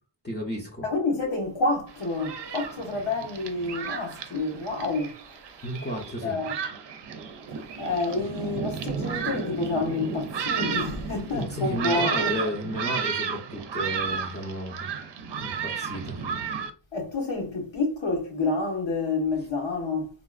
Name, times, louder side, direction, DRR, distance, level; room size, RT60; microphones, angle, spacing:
voice 1, 0.2-0.9 5.6-6.4 11.3-14.9 15.4-16.2, equal, 25° left, 0.6 m, -33 dB
voice 2, 0.8-5.2 6.0-6.6 7.8-12.5 16.9-20.1, left 3 dB, 80° left, 1.3 m, -29 dB
Thunderstorm, 1.9-16.7, right 6 dB, 65° right, 0.5 m, -33 dB
3.8 x 2.4 x 2.4 m
wide cardioid pair, 90°, 45 cm